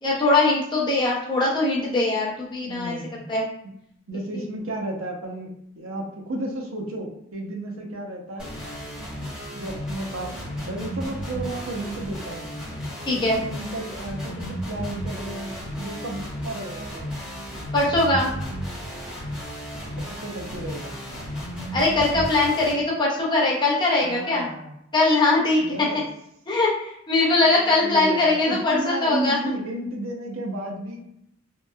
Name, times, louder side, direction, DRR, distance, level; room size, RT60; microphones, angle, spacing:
voice 1, 0.0-3.0 3.3-3.5 13.1-13.4 17.7-18.3 21.7-24.5 24.9-25.9 26.5-29.4, left 2 dB, 20° left, -5 dB, 0.6 m, -21 dB
voice 2, 2.6-3.2 4.1-8.5 9.5-12.5 13.1-17.1 20.0-20.9 24.0-24.7 25.6-26.0 27.4-31.0, right 1 dB, 80° right, 1 dB, 0.5 m, -33 dB
sound 1, 8.4-22.7, equal, 5° right, 0.9 m, -34 dB
2.9 x 2.0 x 2.2 m, 0.76 s
head